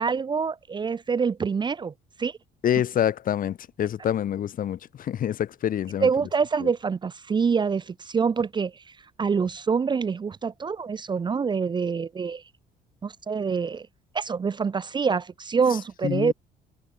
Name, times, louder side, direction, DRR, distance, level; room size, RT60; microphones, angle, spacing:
voice 1, 0.0-2.4 6.0-8.8 9.2-12.4 13.0-13.9 14.1-16.3, right 5 dB, 25° right, 0.7 m, -26 dB
voice 2, 2.6-6.1 6.6-6.7 16.0-16.3, left 10 dB, 55° left, 3.8 m, -26 dB
cardioid pair, 110°, 17 cm